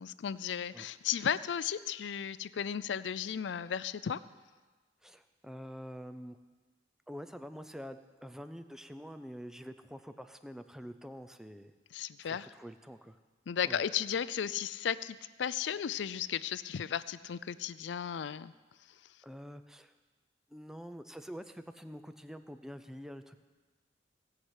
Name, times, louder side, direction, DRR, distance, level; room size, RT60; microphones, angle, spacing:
voice 1, 0.0-4.2 11.9-12.5 13.5-18.5, left 8 dB, 75° left, 16 dB, 0.4 m, -35 dB
voice 2, 5.0-6.4 7.1-11.7 12.2-13.2 13.6-13.8 19.2-19.9 20.5-23.4, equal, 5° right, 10 dB, 0.5 m, -46 dB
17.5 x 5.9 x 8.2 m, 1.3 s
head